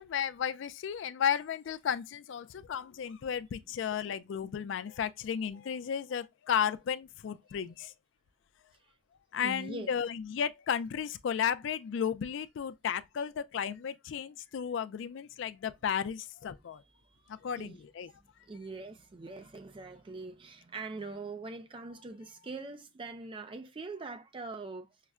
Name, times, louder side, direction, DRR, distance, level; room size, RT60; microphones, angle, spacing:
voice 1, 0.0-7.9 9.3-16.8 17.3-18.1, left 8 dB, 65° left, 0.3 m, -34 dB
voice 2, 9.4-9.9 17.0-17.2 17.6-17.8 18.1-24.9, right 3 dB, 25° right, 0.3 m, -43 dB
5.6 x 2.1 x 2.3 m
head